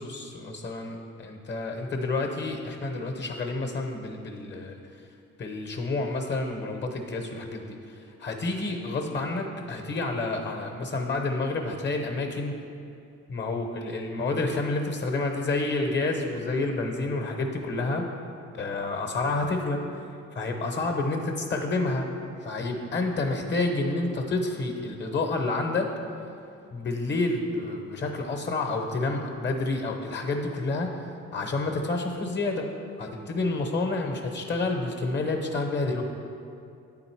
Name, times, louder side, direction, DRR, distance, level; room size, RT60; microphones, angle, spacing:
voice 1, 0.0-4.8 5.4-12.6 13.3-18.1 18.5-19.8 20.3-22.1 22.4-25.9 26.7-30.9 31.3-32.7 33.0-36.0, left 2 dB, 35° left, 3 dB, 0.8 m, -29 dB
8.8 x 3.9 x 4.5 m, 2.6 s
cardioid pair, 90°, 30 cm